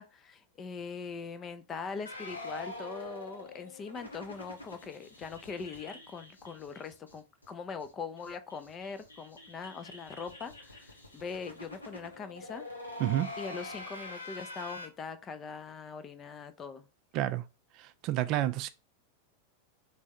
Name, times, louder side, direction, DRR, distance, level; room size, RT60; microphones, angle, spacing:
voice 1, 0.0-12.6 13.4-16.8, left 5 dB, 25° left, 0.5 m, -42 dB
sound 1, 2.1-7.2 7.4-7.5 7.8-7.9 8.2-14.9, left 2 dB, 80° left, 1.1 m, -45 dB
voice 2, 13.0-13.3 17.1-17.4 17.8-18.7, right 13 dB, 40° right, 0.3 m, -30 dB
3.5 x 3.2 x 4.1 m
figure-of-eight pair, 90°, 0 cm